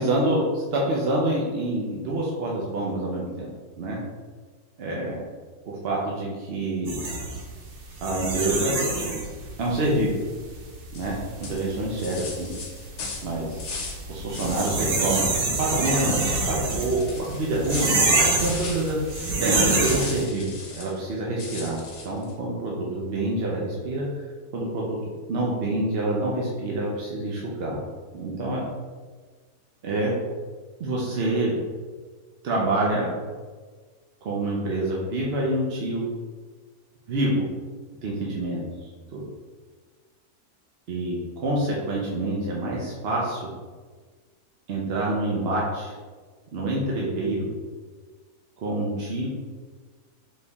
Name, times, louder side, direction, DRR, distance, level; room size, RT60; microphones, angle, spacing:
voice 1, 0.0-0.4 0.7-3.5 3.8-4.0 4.8-5.2 5.8-7.0 8.0-8.8 9.6-10.1 10.9-12.5 13.2-13.7 14.1-15.3 15.6-19.0 19.4-24.0 24.5-25.0 25.3-27.8 28.1-28.6 29.8-30.1 30.8-31.6 32.4-33.1 34.2-36.0 37.1-37.5 38.0-38.6 39.1-39.2 40.9-43.4 44.7-45.9 46.5-47.5 48.6-49.3, right 1 dB, 55° right, -3 dB, 0.7 m, -27 dB
sound 1, 6.9-20.2, right 2 dB, 85° right, 1.4 m, -27 dB
sound 2, 10.9-11.1 11.4-14.0 14.3-15.3 15.5-21.0 21.4-22.3, left 3 dB, 55° left, 1.0 m, -38 dB
4.4 x 3.1 x 3.4 m, 1.5 s
omnidirectional pair, 1.6 m